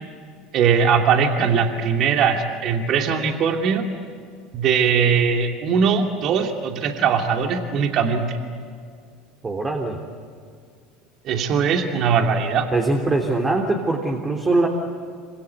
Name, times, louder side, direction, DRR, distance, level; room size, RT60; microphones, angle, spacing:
voice 1, 0.5-3.9 4.5-8.4 11.2-12.7, right 6 dB, 50° right, 4 dB, 2.6 m, -20 dB
voice 2, 9.4-10.0 12.7-14.7, right 2 dB, 20° right, 1 dB, 3.4 m, -22 dB
27.0 x 25.5 x 8.4 m, 2.1 s
hypercardioid pair, 75°, 0 cm